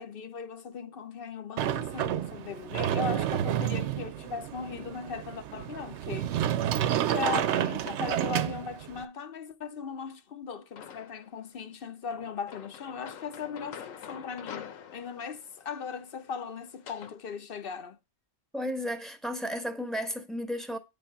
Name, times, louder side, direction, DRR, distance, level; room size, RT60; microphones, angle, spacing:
voice 1, 0.0-6.3 7.1-18.0, left 6 dB, 55° left, 0.7 m, -38 dB
Sliding door, 1.6-9.0, right 11 dB, 70° right, 0.8 m, -30 dB
sound 1, 10.8-11.4 12.1-17.2, left 8 dB, 85° left, 1.2 m, -46 dB
voice 2, 18.5-20.8, equal, ahead, 0.8 m, -33 dB
9.2 x 3.5 x 5.6 m
omnidirectional pair, 1.3 m